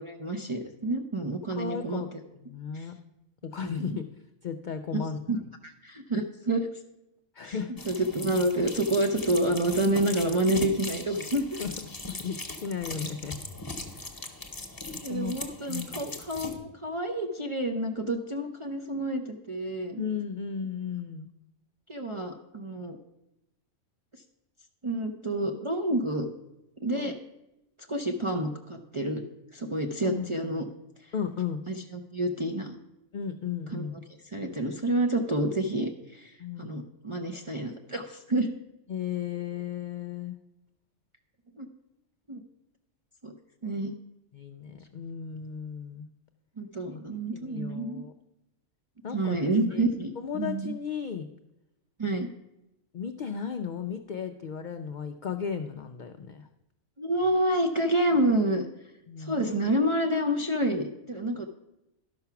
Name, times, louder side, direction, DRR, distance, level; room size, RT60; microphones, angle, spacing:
voice 1, 0.0-2.2 2.7-2.9 3.6-4.0 4.9-5.0 5.3-5.4 5.6-6.7 7.4-7.6 7.8-11.6 15.0-20.0 21.9-23.0 24.8-26.3 26.8-27.1 27.9-29.2 29.5-30.7 31.0-31.1 31.7-32.8 33.7-33.8 34.2-38.5 41.6-41.7 42.3-42.4 43.2-43.3 43.6-43.9 46.6-48.0 49.1-50.7 52.0-52.3 57.0-58.7 59.2-61.5, right 1 dB, 45° right, 2 dB, 0.4 m, -28 dB
voice 2, 1.5-2.1 2.3-2.9 3.4-4.1 4.4-5.2 7.3-7.9 11.6-11.7 12.1-13.3 13.9-14.1 15.1-15.4 15.7-16.0 20.0-21.3 27.0-27.1 30.0-30.3 31.1-31.6 33.1-34.0 36.4-36.8 38.9-40.4 44.3-46.1 46.9-48.1 49.0-49.4 49.7-49.8 50.2-51.2 52.9-56.5 59.1-59.5, left 7 dB, 85° left, 7 dB, 0.4 m, -35 dB
sound 1, 7.8-16.6, left 2 dB, 20° left, 0.8 m, -39 dB
11.5 x 5.8 x 5.7 m, 0.91 s
omnidirectional pair, 1.4 m